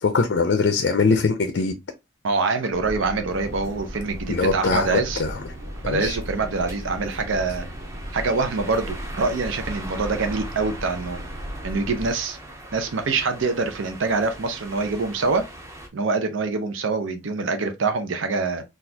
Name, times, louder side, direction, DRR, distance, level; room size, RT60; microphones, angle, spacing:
voice 1, 0.0-1.8 4.3-5.5 5.8-6.2, left 4 dB, 60° left, 0.4 m, -22 dB
voice 2, 2.2-5.2 5.8-7.7 8.1-11.2 11.6-12.4 12.7-15.4 15.9-18.6, right 3 dB, 80° right, 0.6 m, -25 dB
sound 1, 2.7-12.1, equal, 45° right, 1.1 m, -36 dB
sound 2, 3.3-15.9, right 1 dB, 15° right, 0.6 m, -41 dB
4.0 x 2.4 x 2.7 m
head